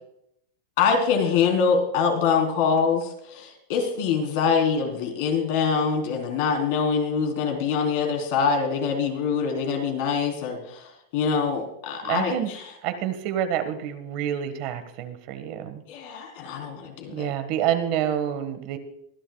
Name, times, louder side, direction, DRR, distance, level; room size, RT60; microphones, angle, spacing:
voice 1, 0.8-12.6 15.9-17.3, left 5 dB, 55° left, 3 dB, 3.9 m, -24 dB
voice 2, 12.0-12.5 12.8-15.8 17.1-18.8, right 10 dB, 50° right, 9 dB, 1.6 m, -28 dB
23.5 x 11.0 x 2.4 m, 0.76 s
supercardioid pair, 150°, 0 cm